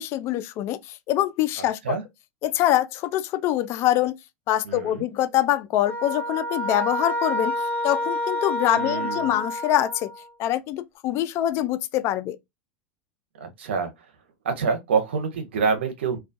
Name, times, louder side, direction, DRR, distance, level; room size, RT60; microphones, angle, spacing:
voice 1, 0.0-2.0 2.4-4.2 4.5-10.1 10.4-12.4, left 13 dB, 45° left, 0.3 m, -24 dB
voice 2, 4.7-5.1 8.7-9.3 13.4-13.9 14.4-16.2, right 5 dB, 90° right, 0.7 m, -26 dB
sound 1, 5.9-10.3, left 1 dB, 30° left, 0.9 m, -28 dB
2.3 x 2.2 x 2.5 m
hypercardioid pair, 110°, 6 cm